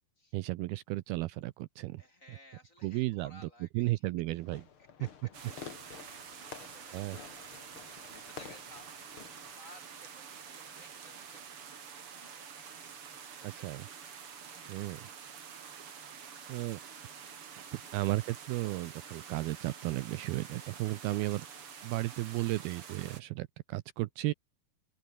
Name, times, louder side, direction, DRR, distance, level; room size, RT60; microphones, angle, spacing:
voice 1, 0.3-2.0 2.3-2.4 2.8-4.7 5.0-5.1 6.9-7.2 13.4-13.9 14.7-15.1 16.5-16.8 17.6-21.5 21.8-24.3, right 19 dB, 80° right, 2.4 m, -34 dB
voice 2, 2.0-4.0 5.0-5.5 5.8-9.2 9.6-12.7 17.8-18.1, left 1 dB, 20° left, 5.0 m, -58 dB
Fireworks, 4.4-9.5, left 7 dB, 40° left, 2.1 m, -50 dB
sound 1, 5.3-23.2, right 7 dB, 40° right, 2.6 m, -48 dB
open air
omnidirectional pair, 4.7 m